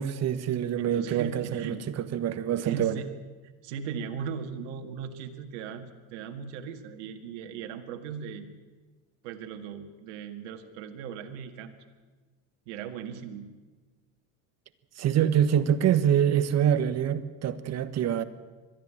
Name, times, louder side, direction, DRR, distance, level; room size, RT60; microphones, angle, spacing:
voice 1, 0.0-3.0 15.0-18.2, right 9 dB, 45° right, 1.4 m, -25 dB
voice 2, 0.9-1.8 2.6-3.1 3.6-8.5 9.2-11.7 12.7-13.5, right 7 dB, 80° right, 1.9 m, -38 dB
21.5 x 13.5 x 9.0 m
supercardioid pair, 105°, 37 cm